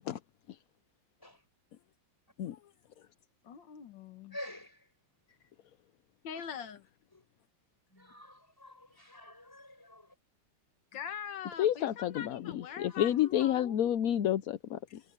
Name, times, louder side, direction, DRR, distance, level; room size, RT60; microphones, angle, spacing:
voice 1, 3.4-4.4 6.2-6.8 10.9-13.8, left 8 dB, 90° left, 2.0 m, -43 dB
voice 2, 4.3-4.9 6.3-6.5 7.1-7.2 7.9-10.1 12.9-13.2, left 1 dB, 10° left, 4.8 m, -49 dB
voice 3, 11.6-15.0, left 11 dB, 65° left, 1.0 m, -30 dB
omnidirectional pair, 2.0 m